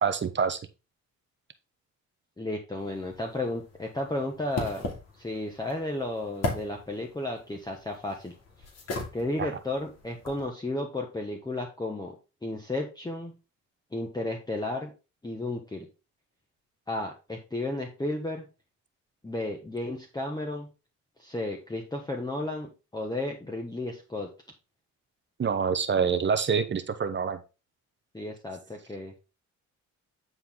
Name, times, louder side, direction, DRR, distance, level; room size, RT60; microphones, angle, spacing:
voice 1, 0.0-0.6 9.4-9.5 25.4-27.4, right 6 dB, 40° right, 10 dB, 0.9 m, -26 dB
voice 2, 2.4-4.9 5.2-8.3 9.1-12.1 12.4-13.4 13.9-14.9 15.2-15.9 16.9-18.4 19.2-20.7 21.2-24.3 28.1-29.1, left 2 dB, 15° left, 1 dB, 1.4 m, -33 dB
sound 1, 2.8-10.5, left 2 dB, 55° left, 2.7 m, -39 dB
9.6 x 4.5 x 3.8 m, 0.30 s
cardioid pair, 90°, 30 cm